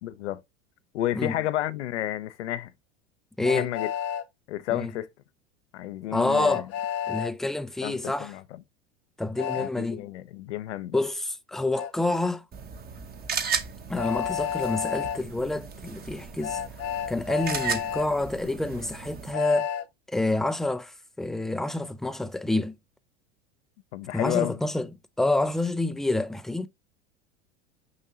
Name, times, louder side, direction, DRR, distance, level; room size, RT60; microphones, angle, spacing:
voice 1, 0.0-0.4 0.9-2.7 3.4-3.9 4.5-5.1 5.7-6.6 7.8-8.6 9.5-11.0 23.9-24.6, left 14 dB, 75° left, 0.7 m, -31 dB
Train, 3.4-4.2 6.3-7.3 9.4-9.7 11.8-11.9 14.0-15.2 16.4-18.1 19.3-19.8, left 9 dB, 45° left, 0.9 m, -31 dB
voice 2, 3.4-3.7 4.7-4.9 6.1-6.7 7.1-8.3 9.2-10.1 10.9-12.4 13.9-16.6 17.1-19.7 20.1-22.8 24.1-24.9 25.2-26.7, left 2 dB, ahead, 0.4 m, -28 dB
sound 1, 12.5-19.3, right 6 dB, 25° right, 1.0 m, -35 dB
6.4 x 5.4 x 2.8 m
hypercardioid pair, 90°, 35 cm